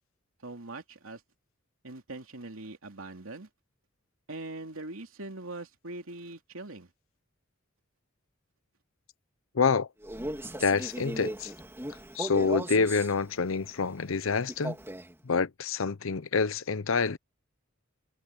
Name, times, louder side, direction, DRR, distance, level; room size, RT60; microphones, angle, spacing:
voice 1, 0.4-1.2 1.8-3.5 4.3-6.9, right 2 dB, 80° right, 3.0 m, -42 dB
voice 2, 9.5-9.9 10.6-11.5 12.1-14.8 15.2-17.2, left 5 dB, 70° left, 0.7 m, -27 dB
Male speech man speaking, 10.0-13.1 14.5-15.1, right 1 dB, 10° right, 2.8 m, -37 dB
head